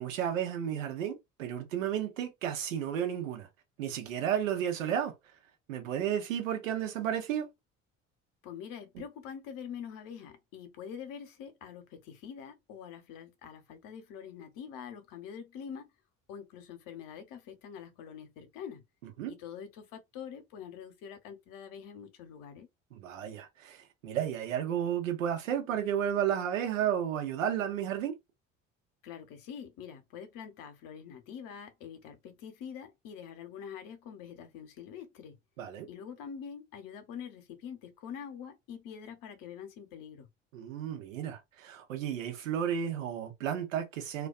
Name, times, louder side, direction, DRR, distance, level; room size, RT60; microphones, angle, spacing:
voice 1, 0.0-3.5 3.8-5.1 5.7-7.5 8.9-9.0 19.0-19.3 22.9-28.1 35.6-35.9 40.5-44.3, right 9 dB, 80° right, 0.9 m, -32 dB
voice 2, 8.4-15.9 16.3-18.8 19.2-22.7 29.0-35.3 35.9-40.3, left 7 dB, 55° left, 0.9 m, -45 dB
2.4 x 2.2 x 2.4 m
figure-of-eight pair, 60°, 39 cm